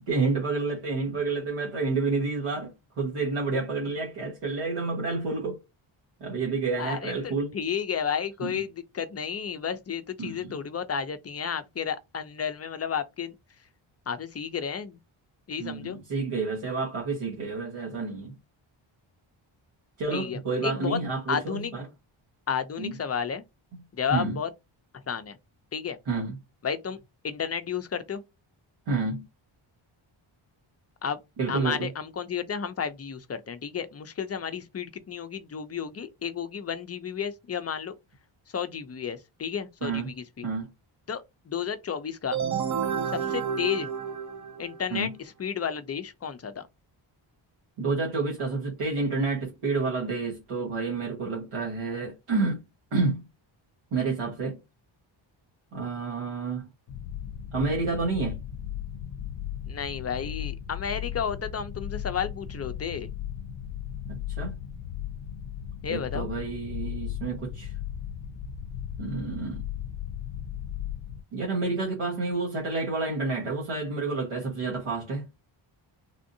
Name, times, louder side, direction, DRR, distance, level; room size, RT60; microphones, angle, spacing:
voice 1, 0.1-5.6 6.2-7.5 8.4-8.6 10.2-10.5 15.6-18.3 20.0-21.8 22.8-23.0 24.1-24.4 26.1-26.3 28.9-29.3 31.4-31.9 39.8-40.1 40.4-40.7 44.9-45.1 47.8-52.6 52.9-53.2 53.9-54.6 55.7-56.7 57.5-58.4 64.0-64.6 65.9-67.7 69.0-69.6 71.3-75.2, right 3 dB, 85° right, 1.3 m, -29 dB
voice 2, 6.8-13.3 14.1-15.0 15.5-16.0 20.1-21.0 21.3-21.7 22.5-23.4 23.9-24.5 25.1-25.4 25.7-26.0 26.6-27.0 27.2-28.2 31.0-31.2 31.5-37.9 38.5-40.5 41.1-42.5 43.1-43.9 44.6-46.7 59.7-63.1 65.8-66.3, left 7 dB, 30° left, 0.4 m, -32 dB
sound 1, 42.3-45.0, right 7 dB, 35° right, 0.7 m, -30 dB
sound 2, 56.9-71.2, left 10 dB, 80° left, 0.6 m, -36 dB
3.5 x 2.5 x 2.6 m
cardioid pair, 100°, 49 cm